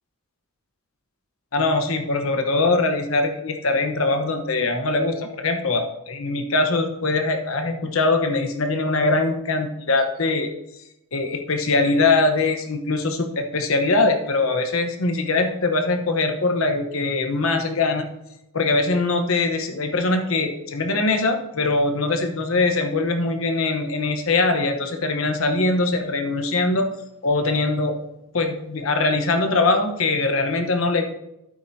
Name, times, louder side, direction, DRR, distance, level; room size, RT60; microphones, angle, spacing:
voice 1, 1.5-10.5 11.1-18.1 18.5-26.9 27.2-28.0 28.3-31.1, left 3 dB, 65° left, 6 dB, 1.0 m, -22 dB
12.0 x 8.8 x 2.8 m, 0.86 s
head